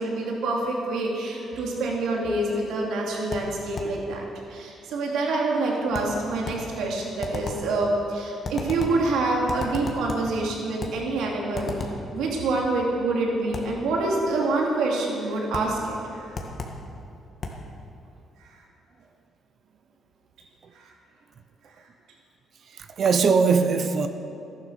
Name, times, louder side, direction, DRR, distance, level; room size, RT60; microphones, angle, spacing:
voice 1, 0.0-16.3 18.4-18.6 20.7-20.9, right 2 dB, 85° right, -1 dB, 2.7 m, -26 dB
sound 1, 3.3-4.0 5.9-6.7 7.2-7.7 8.4-9.1 9.5-10.4 10.8-11.1 11.5-12.1 13.5-13.8 15.5-15.8 16.3-16.9 17.4-17.7, left 3 dB, 50° left, 1.9 m, -35 dB
voice 2, 22.7-24.1, right 5 dB, 55° right, 8 dB, 0.8 m, -21 dB
14.0 x 11.0 x 7.0 m, 2.7 s
cardioid pair, 90°, 0 cm